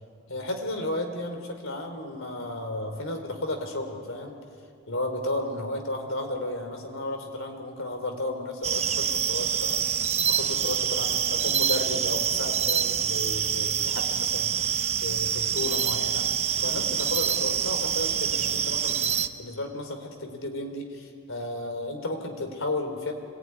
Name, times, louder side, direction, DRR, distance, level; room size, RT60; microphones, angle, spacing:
voice 1, 0.3-4.4 4.9-14.6 14.9-16.3 16.6-23.1, left 1 dB, 70° left, 4 dB, 3.8 m, -33 dB
sound 1, 8.6-19.3, right 8 dB, 30° right, 0.8 m, -26 dB
26.0 x 19.5 x 9.7 m, 2.2 s
head